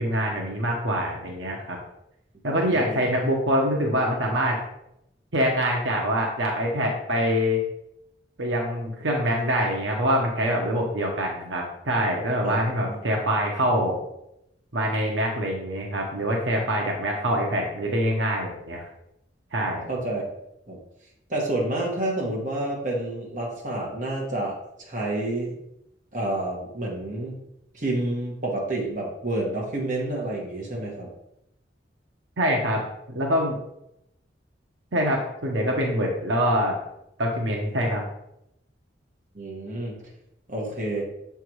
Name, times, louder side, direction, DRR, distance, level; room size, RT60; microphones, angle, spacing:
voice 1, 0.0-1.8 2.4-4.6 5.3-7.6 8.4-14.0 14.7-18.8 19.5-19.9 32.4-32.8 33.1-33.6 34.9-36.8 37.2-38.0, equal, 80° right, 0 dB, 1.1 m, -25 dB
voice 2, 2.6-3.1 12.4-12.6 12.9-13.0 19.9-20.2 20.7-20.8 21.3-25.6 26.1-27.4 27.7-31.1 39.3-39.9 40.5-41.0, right 1 dB, 45° right, -3 dB, 1.7 m, -29 dB
7.1 x 3.5 x 4.7 m, 0.80 s
head